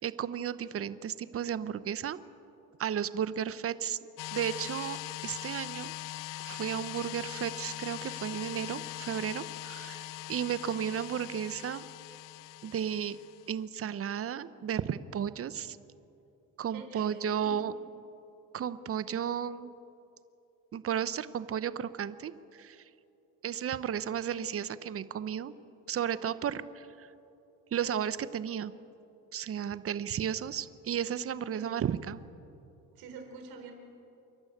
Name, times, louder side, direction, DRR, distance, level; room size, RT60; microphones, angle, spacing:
voice 1, 0.0-2.2 2.8-4.0 4.3-5.9 6.4-11.8 12.6-13.2 13.5-15.8 16.6-17.7 18.5-19.7 20.7-22.8 23.4-25.5 25.9-27.1 27.7-28.7 29.3-32.2, right 9 dB, 40° right, 15 dB, 0.8 m, -34 dB
sound 1, 4.2-13.5, left 17 dB, 65° left, 0.5 m, -41 dB
voice 2, 16.7-17.5 31.5-31.7 32.9-33.7, right 5 dB, 80° right, 4 dB, 4.3 m, -47 dB
29.0 x 12.0 x 8.6 m, 2.8 s
cardioid pair, 110°, 35 cm